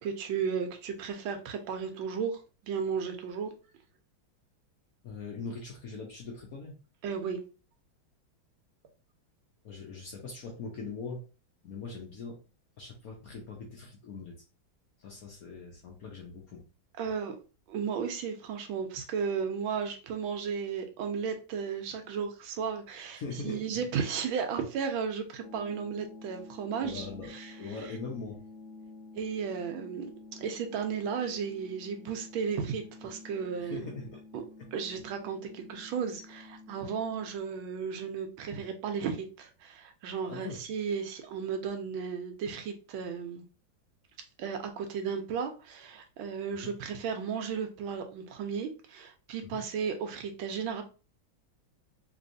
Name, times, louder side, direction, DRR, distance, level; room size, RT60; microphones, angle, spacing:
voice 1, 0.0-3.5 7.0-7.4 17.0-17.3 17.7-27.5 29.1-30.1 30.4-33.9 34.3-34.4 34.7-43.4 44.4-50.8, right 6 dB, 80° right, 1.4 m, -34 dB
voice 2, 5.0-6.7 9.6-11.2 11.6-12.4 12.8-14.3 15.0-16.6 23.1-23.9 26.8-27.3 27.6-28.4 33.6-34.2 34.6-34.7 40.2-40.6 46.5-46.7 49.4-49.6, left 4 dB, 65° left, 0.9 m, -41 dB
sound 1, 25.4-37.4, left 3 dB, 85° left, 1.5 m, -50 dB
3.4 x 3.1 x 2.6 m
omnidirectional pair, 2.2 m